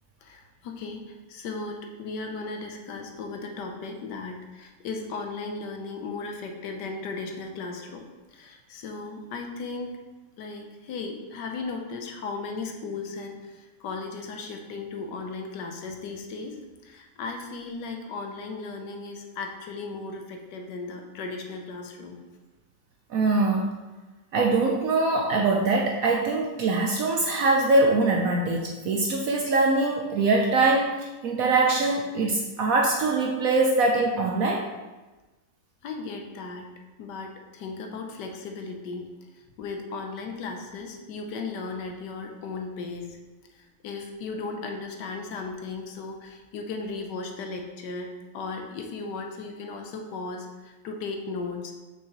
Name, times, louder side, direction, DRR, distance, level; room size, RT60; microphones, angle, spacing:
voice 1, 0.2-10.0 10.4-22.2 35.8-36.7 37.0-39.0 39.6-43.2 43.5-51.7, left 3 dB, 70° left, 3 dB, 1.2 m, -36 dB
voice 2, 23.1-23.7 24.3-34.7, right 3 dB, 70° right, 0 dB, 0.8 m, -23 dB
6.0 x 5.6 x 2.9 m, 1.2 s
omnidirectional pair, 2.0 m